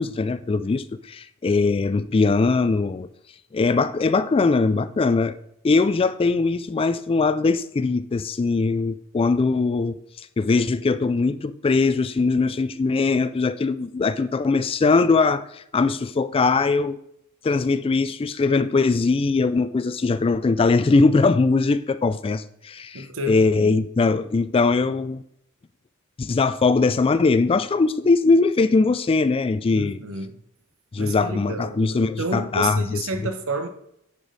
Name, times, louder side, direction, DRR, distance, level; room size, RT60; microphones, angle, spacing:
voice 1, 0.0-3.1 3.5-5.4 5.6-17.0 17.4-25.2 26.2-30.0 30.9-33.0, left 4 dB, 25° left, 0.3 m, -21 dB
voice 2, 22.9-23.8 29.7-30.3 31.0-33.7, right 2 dB, 65° right, 1.1 m, -30 dB
9.8 x 5.2 x 4.0 m
head